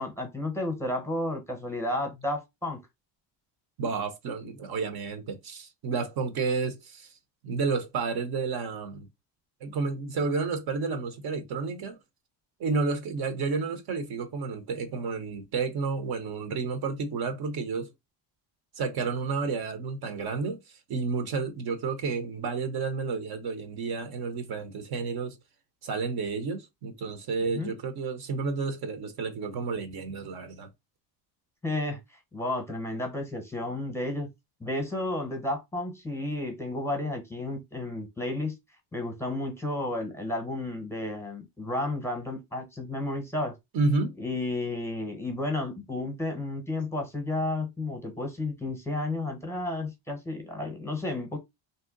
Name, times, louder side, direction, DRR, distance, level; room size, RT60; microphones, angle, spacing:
voice 1, 0.0-2.8 27.4-27.7 31.6-32.0 32.3-34.3 34.6-38.5 38.9-43.6 44.2-51.4, left 2 dB, 5° left, 0.9 m, -32 dB
voice 2, 3.8-7.1 7.4-9.1 9.6-12.0 12.6-17.9 18.7-25.4 25.8-30.7 43.7-44.2, right 4 dB, 55° right, 0.8 m, -31 dB
2.7 x 2.1 x 3.7 m
cardioid pair, 125°, 45 cm